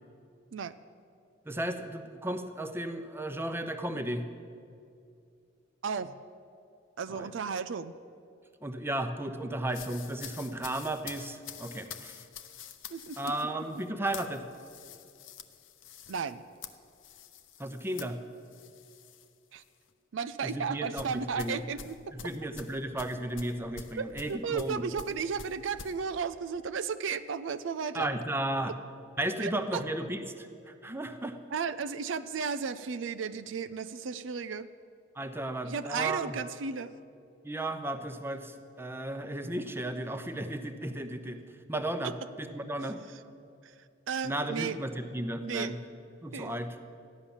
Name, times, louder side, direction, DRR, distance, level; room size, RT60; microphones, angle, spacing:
voice 1, 1.5-4.2 7.1-7.3 8.6-12.1 13.2-14.4 17.6-18.2 20.4-21.6 22.1-24.8 27.9-28.7 29.2-30.5 30.8-31.4 35.2-36.4 37.4-41.4 41.7-43.0 44.2-45.8 46.2-46.8, right 1 dB, 10° right, 8 dB, 0.8 m, -34 dB
voice 2, 5.8-6.2 7.0-7.9 12.9-13.5 16.1-16.4 19.5-19.6 20.1-22.1 24.0-28.1 29.4-29.8 31.5-34.7 35.7-36.9 42.0-42.1 43.1-43.2 44.1-44.8 45.4-45.8 46.3-46.5, right 6 dB, 75° right, 12 dB, 0.5 m, -34 dB
sound 1, 9.7-19.3 19.6-19.9 21.0-26.0, left 7 dB, 85° left, 0.8 m, -47 dB
14.5 x 10.5 x 7.2 m, 2.5 s
head